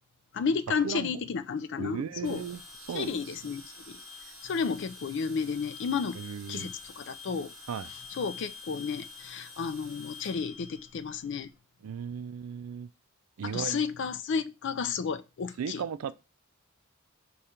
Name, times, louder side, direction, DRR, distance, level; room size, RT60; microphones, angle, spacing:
voice 1, 0.3-2.4 2.9-4.0 4.4-6.2 6.5-7.5 8.1-11.5 13.4-15.8, left 5 dB, 55° left, 0.4 m, -32 dB
voice 2, 0.8-1.2 1.8-3.2 6.2-6.7 7.7-7.9 11.8-12.9 13.4-13.8 15.6-16.1, right 7 dB, 85° right, 0.4 m, -36 dB
sound 1, 2.2-11.5, left 4 dB, 5° right, 3.0 m, -47 dB
5.0 x 2.4 x 4.2 m
head